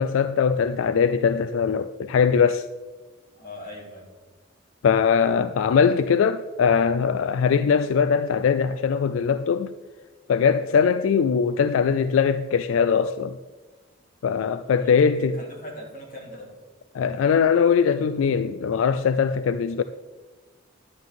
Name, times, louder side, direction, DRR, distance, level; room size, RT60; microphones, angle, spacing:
voice 1, 0.0-2.7 4.8-9.7 10.3-13.4 14.2-15.4 16.9-19.8, left 6 dB, 75° left, 0.3 m, -21 dB
voice 2, 3.3-4.1 14.8-16.5, left 1 dB, 40° left, 2.9 m, -41 dB
11.0 x 9.4 x 3.6 m
head